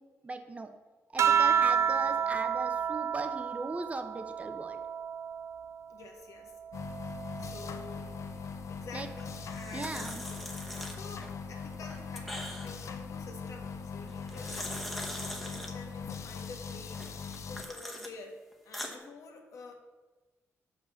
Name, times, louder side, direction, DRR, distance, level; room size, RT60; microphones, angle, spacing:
voice 1, 0.2-0.7 1.1-4.8 8.9-9.1 9.7-10.2, right 3 dB, 25° right, 8 dB, 0.7 m, -38 dB
sound 1, 1.2-6.0 6.4-8.2 9.4-9.9, right 7 dB, 60° right, 0.4 m, -31 dB
voice 2, 5.9-6.5 7.4-8.1 8.7-10.4 10.9-18.4 18.6-19.7, left 3 dB, 85° left, 3 dB, 1.5 m, -49 dB
sound 2, 6.7-17.6, left 5 dB, 65° left, 0.6 m, -41 dB
sound 3, 9.2-11.3 11.7-12.9 14.1-15.7 16.9-18.1 18.5-19.0, equal, 5° left, 1.1 m, -42 dB
6.7 x 5.6 x 6.9 m, 1.2 s
wide cardioid pair, 120°, 5 cm